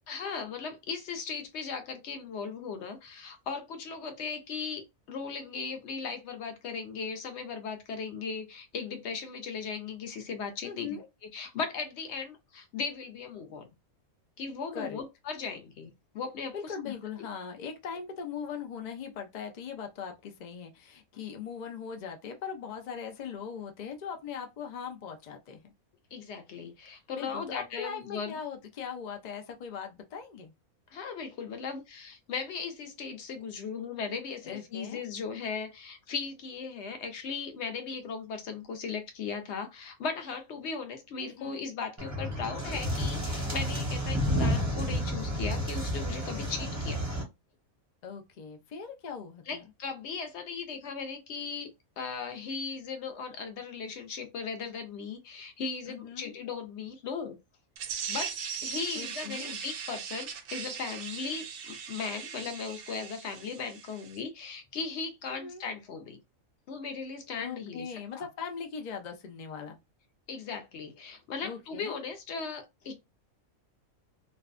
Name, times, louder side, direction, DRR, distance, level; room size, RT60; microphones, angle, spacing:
voice 1, 0.1-11.0 11.3-13.7 14.4-16.9 26.1-28.4 30.9-47.0 49.5-57.4 58.1-58.3 58.6-66.2 66.7-67.9 68.2-68.3 70.3-72.9, left 5 dB, 65° left, 0.8 m, -37 dB
voice 2, 10.6-11.0 14.7-15.0 16.5-25.7 27.2-30.5 34.4-35.0 41.2-41.6 48.0-49.6 55.9-56.4 58.9-59.5 65.3-65.6 67.4-69.8 71.4-72.0, left 6 dB, 85° left, 0.3 m, -40 dB
sound 1, 42.0-47.2, equal, 20° right, 0.5 m, -31 dB
sound 2, 57.8-64.2, right 7 dB, 75° right, 1.0 m, -39 dB
2.6 x 2.1 x 2.4 m
omnidirectional pair, 1.5 m